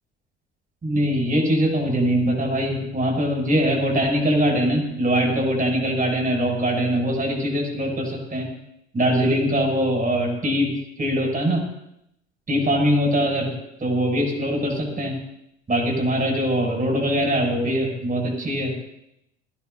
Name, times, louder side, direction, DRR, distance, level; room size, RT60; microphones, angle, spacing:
voice 1, 0.8-8.5 8.9-11.7 12.5-15.2 15.7-18.8, equal, 25° right, 0 dB, 7.5 m, -22 dB
22.5 x 16.5 x 2.9 m, 0.80 s
figure-of-eight pair, 65°, 33 cm